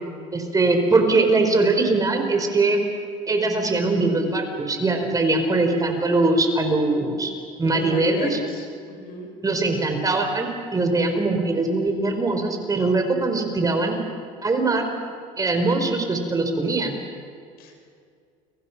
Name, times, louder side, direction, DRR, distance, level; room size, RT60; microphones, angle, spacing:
voice 1, 0.3-2.8 3.3-7.3 7.6-8.4 9.4-14.0 14.4-14.9 15.4-16.9, right 3 dB, 20° right, 4 dB, 4.7 m, -21 dB
voice 2, 7.6-9.3 17.6-17.8, left 2 dB, 70° left, 4 dB, 6.2 m, -33 dB
30.0 x 25.0 x 6.1 m, 2.3 s
supercardioid pair, 105°, 17 cm